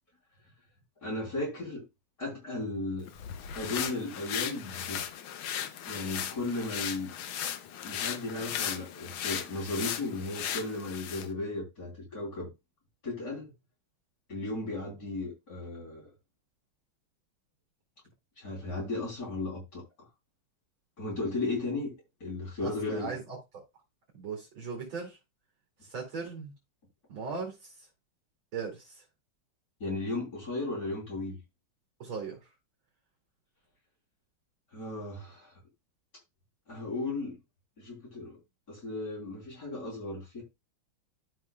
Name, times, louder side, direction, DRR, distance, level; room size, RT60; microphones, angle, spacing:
voice 1, 1.0-1.8 2.2-3.1 3.5-5.0 5.9-7.1 7.8-12.5 13.0-13.5 14.3-16.1 18.4-19.8 21.0-21.9 22.2-23.1 29.8-31.4 34.7-35.5 36.7-37.4 37.8-38.4 38.7-40.4, left 2 dB, 45° left, 3.7 m, -35 dB
sound 1, 3.1-11.3, left 9 dB, 80° left, 1.6 m, -37 dB
voice 2, 22.6-23.4 24.1-25.2 25.8-26.5 27.1-27.9 28.5-29.0 32.0-32.4, right 5 dB, 65° right, 3.2 m, -38 dB
13.0 x 5.5 x 2.3 m
omnidirectional pair, 2.3 m